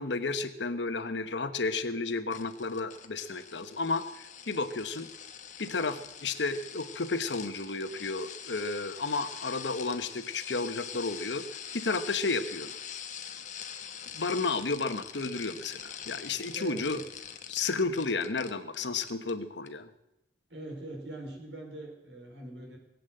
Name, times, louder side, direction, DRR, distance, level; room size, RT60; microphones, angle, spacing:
voice 1, 0.0-5.1 5.6-11.4 11.7-12.7 14.1-17.0 17.5-19.9, left 3 dB, 90° left, 10 dB, 1.1 m, -32 dB
sound 1, 2.3-18.8 19.0-19.3 19.7-19.8, left 8 dB, 45° left, 1.2 m, -44 dB
voice 2, 16.5-17.1 20.5-22.8, right 1 dB, 90° right, 3 dB, 4.5 m, -42 dB
20.5 x 8.4 x 7.7 m, 0.89 s
head